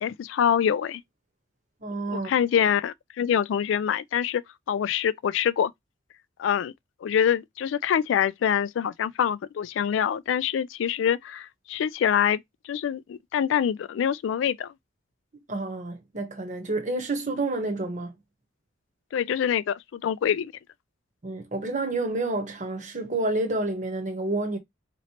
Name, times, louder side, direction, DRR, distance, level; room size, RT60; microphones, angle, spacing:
voice 1, 0.0-1.0 2.1-4.4 4.7-5.7 6.4-6.7 7.0-12.4 12.7-14.7 19.1-20.5, left 8 dB, 80° left, 0.3 m, -25 dB
voice 2, 1.8-2.3 15.5-18.1 21.2-24.6, right 2 dB, 40° right, 1.0 m, -29 dB
4.2 x 3.0 x 2.8 m
head